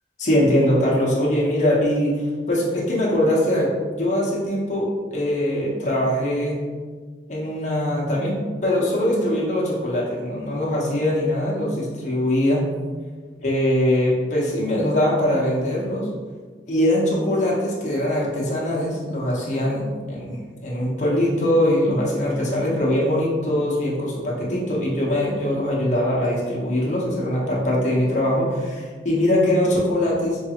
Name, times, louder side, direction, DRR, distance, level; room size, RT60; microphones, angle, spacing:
voice 1, 0.2-2.2 2.5-6.6 7.3-12.6 13.4-16.1 16.7-30.4, left 1 dB, 40° left, -5 dB, 0.8 m, -22 dB
5.1 x 2.4 x 2.9 m, 1.5 s
head